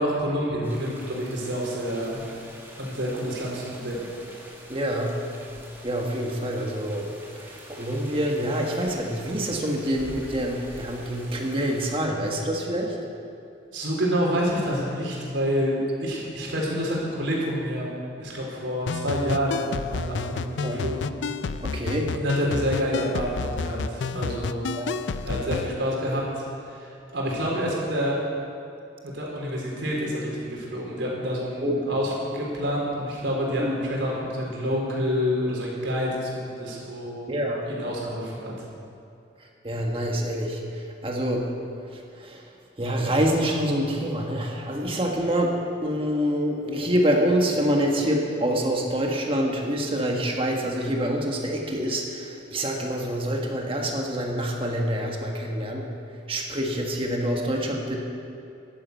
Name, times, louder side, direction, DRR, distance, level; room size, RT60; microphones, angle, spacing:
voice 1, 0.0-2.2 2.8-4.1 13.7-17.9 18.2-21.1 22.1-24.6 25.2-28.2 29.0-37.3 37.6-38.5, equal, 80° right, -3 dB, 4.0 m, -28 dB
sound 1, 0.6-12.0, right 1 dB, 10° right, 1.8 m, -46 dB
voice 2, 4.7-5.2 5.8-13.0 20.6-20.8 21.6-22.1 24.8-25.0 31.6-32.0 33.6-33.7 37.3-37.7 39.6-41.5 41.9-42.4 42.8-55.9 56.3-58.0, equal, 30° right, 0 dB, 1.5 m, -26 dB
sound 2, 18.9-25.7, left 5 dB, 75° left, 0.4 m, -31 dB
11.5 x 9.9 x 8.2 m, 2.6 s
head